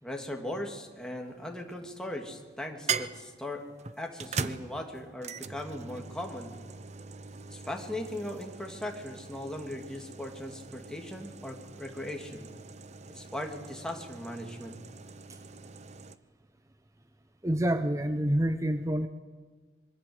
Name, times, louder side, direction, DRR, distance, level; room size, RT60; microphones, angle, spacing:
voice 1, 0.0-3.6 4.0-6.5 7.5-12.5 13.1-14.8, left 1 dB, 5° left, 1 dB, 2.9 m, -38 dB
sound 1, 1.2-1.8 2.9-16.2, right 5 dB, 40° right, 0.9 m, -41 dB
voice 2, 17.4-19.1, right 1 dB, 20° right, 9 dB, 0.8 m, -27 dB
25.5 x 23.0 x 8.2 m, 1.4 s
head